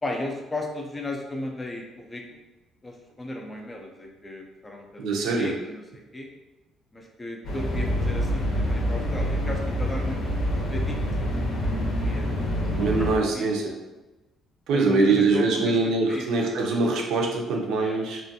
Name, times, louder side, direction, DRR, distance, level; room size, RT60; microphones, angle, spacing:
voice 1, 0.0-2.2 2.8-6.3 6.9-11.7 12.0-12.3 12.5-13.5 14.7-15.8 16.1-16.3 17.8-18.0, left 1 dB, 15° left, 1 dB, 0.3 m, -35 dB
voice 2, 5.0-5.5 12.7-13.8 14.7-18.2, right 3 dB, 75° right, 0 dB, 0.5 m, -23 dB
sound 1, 7.4-13.2, equal, 55° left, 0.6 m, -26 dB
2.5 x 2.2 x 2.6 m, 1.1 s
cardioid pair, 150°, 0 cm